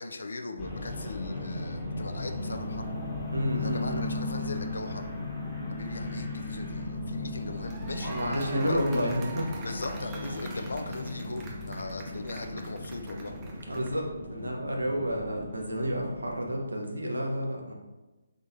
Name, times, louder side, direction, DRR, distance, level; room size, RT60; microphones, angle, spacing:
voice 1, 0.0-2.9 3.5-5.1 5.7-8.8 9.6-13.3, left 3 dB, 75° left, 6 dB, 0.4 m, -39 dB
sound 1, 0.6-16.6, left 1 dB, 5° left, 0.9 m, -38 dB
sound 2, 2.4-12.6, left 4 dB, 55° left, 0.9 m, -39 dB
voice 2, 3.3-4.0 8.0-9.5 13.7-14.0 14.3-17.7, equal, 85° right, 0 dB, 0.8 m, -30 dB
sound 3, 7.4-14.1, right 2 dB, 20° right, 0.6 m, -45 dB
3.7 x 3.5 x 2.6 m, 1.1 s
figure-of-eight pair, 145°, 0 cm